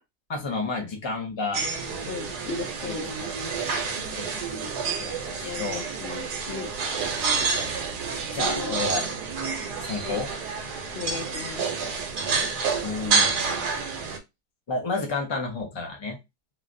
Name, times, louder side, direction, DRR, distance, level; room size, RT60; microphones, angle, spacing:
voice 1, 0.3-1.6 3.2-3.6 3.8-4.7 5.0-5.8 8.3-9.1 9.8-10.3 12.8-13.5 14.7-16.2, left 3 dB, 30° left, 2 dB, 0.6 m, -31 dB
sound 1, 1.5-14.2, right 5 dB, 85° right, 1.3 m, -28 dB
voice 2, 2.1-3.1 5.4-6.7 8.6-8.8 10.0-10.2 10.9-11.7, left 5 dB, 65° left, 2 dB, 0.6 m, -36 dB
3.2 x 2.4 x 2.5 m, 0.22 s
omnidirectional pair, 1.7 m